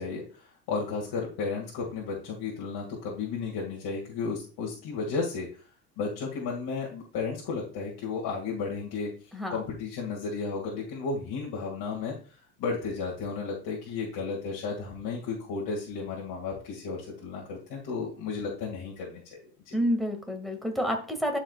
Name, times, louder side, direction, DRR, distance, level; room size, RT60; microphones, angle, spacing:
voice 1, 0.0-5.5 6.0-9.1 9.5-12.1 12.6-19.4 19.7-19.8, left 4 dB, 50° left, -3 dB, 2.3 m, -33 dB
voice 2, 19.7-21.4, equal, ahead, 4 dB, 2.0 m, -29 dB
12.0 x 5.0 x 2.4 m, 0.39 s
supercardioid pair, 90°, 48 cm